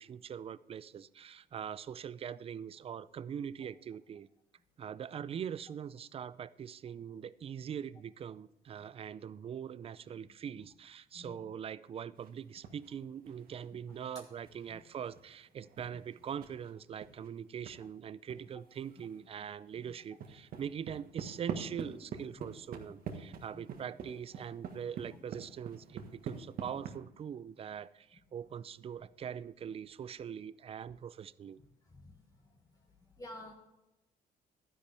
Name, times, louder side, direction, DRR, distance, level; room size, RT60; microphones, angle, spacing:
voice 1, 0.0-4.3 4.8-31.6, right 8 dB, 35° right, 18 dB, 0.4 m, -42 dB
sound 1, 12.2-13.0 13.2-17.8 18.3-18.4 18.7-19.2 19.5-27.0, right 7 dB, 60° right, 1.5 m, -45 dB
voice 2, 23.3-23.6 31.9-32.2 33.2-33.5, left 1 dB, 20° left, 1 dB, 1.4 m, -50 dB
11.5 x 10.0 x 3.4 m, 0.96 s
cardioid pair, 110°, 17 cm